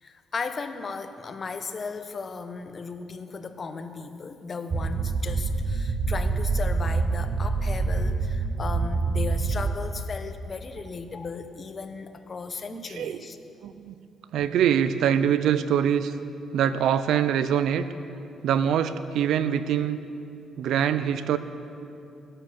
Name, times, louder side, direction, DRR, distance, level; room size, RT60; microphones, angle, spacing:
voice 1, 0.0-13.4, left 4 dB, 40° left, 9 dB, 1.1 m, -36 dB
sound 1, 4.7-9.7, right 4 dB, 40° right, 1.0 m, -26 dB
voice 2, 12.7-13.2 13.6-13.9 14.3-16.1 16.5-17.9 18.4-20.0 20.6-21.4, right 9 dB, 80° right, 13 dB, 0.7 m, -24 dB
16.0 x 11.0 x 7.2 m, 2.6 s
cardioid pair, 90°, 0 cm